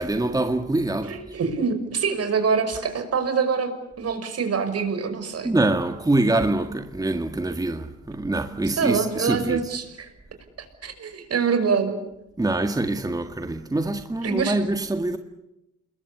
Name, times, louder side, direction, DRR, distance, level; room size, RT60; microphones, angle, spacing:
voice 1, 0.0-1.1 5.4-9.6 12.4-15.2, right 2 dB, 10° right, 1.8 m, -24 dB
voice 2, 1.0-5.5 8.8-10.1 10.6-12.0 14.2-14.6, right 5 dB, 55° right, 5.9 m, -25 dB
28.5 x 21.5 x 8.5 m
cardioid pair, 90°, 30 cm